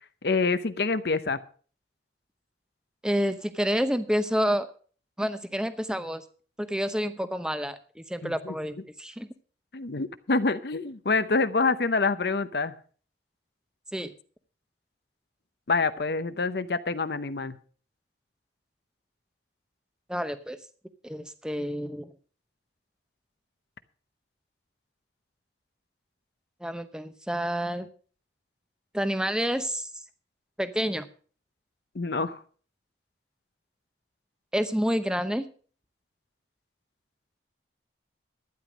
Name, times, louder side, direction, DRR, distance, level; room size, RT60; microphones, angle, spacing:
voice 1, 0.2-1.4 8.2-8.5 9.7-12.7 15.7-17.5 31.9-32.4, left 4 dB, 60° left, 12 dB, 0.7 m, -26 dB
voice 2, 3.0-4.7 5.2-6.2 6.6-9.3 13.9-14.1 20.1-20.6 21.0-22.1 26.6-27.9 28.9-29.9 30.6-31.1 34.5-35.5, equal, 5° right, 10 dB, 0.8 m, -29 dB
12.0 x 10.0 x 5.0 m, 0.42 s
head